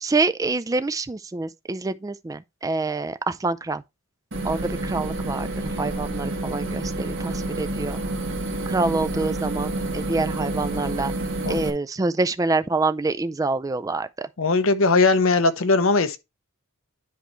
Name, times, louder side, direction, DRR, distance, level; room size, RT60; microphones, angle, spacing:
voice 1, 0.0-3.8 4.4-8.0 8.7-11.1 11.5-14.3, right 3 dB, 15° right, 0.3 m, -26 dB
sound 1, 4.3-11.7, right 2 dB, 60° right, 1.7 m, -29 dB
voice 2, 14.4-16.2, left 3 dB, 65° left, 0.8 m, -19 dB
10.5 x 4.5 x 3.0 m
head